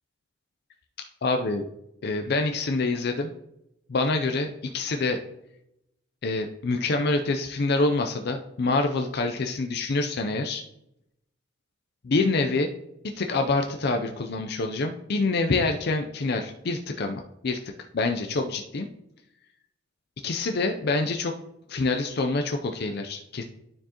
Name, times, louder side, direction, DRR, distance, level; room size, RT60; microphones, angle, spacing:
voice 1, 1.2-1.7 2.0-3.3 3.9-5.2 6.2-10.6 12.0-12.7 13.1-17.6 17.9-18.9 20.2-21.3 21.7-23.4, left 3 dB, 60° left, 5 dB, 0.5 m, -26 dB
12.0 x 4.5 x 2.9 m, 0.82 s
head